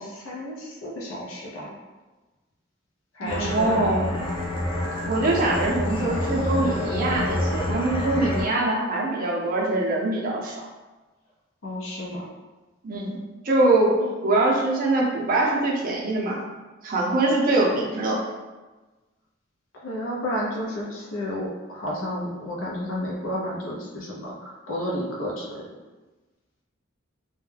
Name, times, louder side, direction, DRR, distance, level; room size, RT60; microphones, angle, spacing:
voice 1, 0.0-1.7 3.1-3.8 11.6-12.3 14.0-14.1 19.7-25.7, equal, 90° left, -4 dB, 0.5 m, -31 dB
voice 2, 3.2-4.1 5.1-10.6 12.8-14.0 14.2-16.4 16.8-18.2, right 2 dB, 45° right, -2 dB, 0.5 m, -23 dB
sound 1, 3.3-8.4, left 1 dB, 25° left, 0.5 m, -27 dB
2.2 x 2.1 x 3.2 m, 1.2 s
head